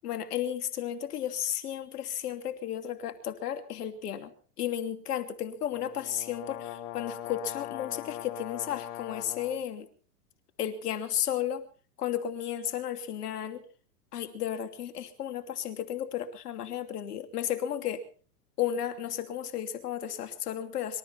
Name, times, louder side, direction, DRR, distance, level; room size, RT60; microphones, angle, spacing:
voice 1, 0.0-4.3 4.6-9.9 10.6-11.7 12.0-13.6 14.1-18.0 18.6-21.0, left 10 dB, 75° left, 8 dB, 2.8 m, -33 dB
sound 1, 5.7-9.6, left 12 dB, 45° left, 3.2 m, -41 dB
25.5 x 13.0 x 4.3 m, 0.40 s
hypercardioid pair, 120°, 46 cm